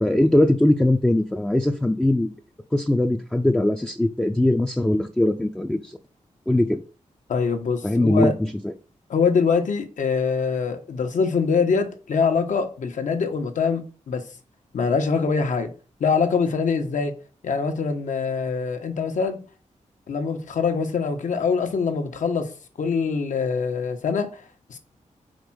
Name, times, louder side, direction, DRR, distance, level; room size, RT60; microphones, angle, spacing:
voice 1, 0.0-2.3 2.7-6.0 6.5-6.8 7.8-8.5, left 1 dB, 5° left, 0.4 m, -20 dB
voice 2, 7.3-8.3 9.1-14.2 14.7-15.7 16.0-17.1 17.4-19.4 20.1-22.5 22.8-24.4 24.7-24.8, left 5 dB, 75° left, 1.1 m, -24 dB
5.1 x 4.3 x 6.1 m
wide cardioid pair, 160°, 13 cm